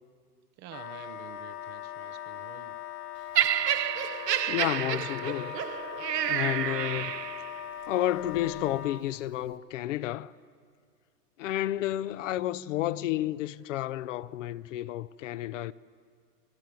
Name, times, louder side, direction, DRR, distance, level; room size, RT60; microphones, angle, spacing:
voice 1, 0.6-2.8, right 11 dB, 20° right, 0.6 m, -49 dB
Wind instrument woodwind instrument, 0.7-9.0, left 11 dB, 70° left, 1.6 m, -40 dB
Laughter, 3.3-7.6 8.4-8.6, right 11 dB, 90° right, 0.9 m, -29 dB
voice 2, 4.5-5.6 6.3-7.1 7.9-10.3 11.4-15.7, left 13 dB, 50° left, 0.7 m, -31 dB
28.5 x 18.5 x 9.1 m
hypercardioid pair, 135°, 48 cm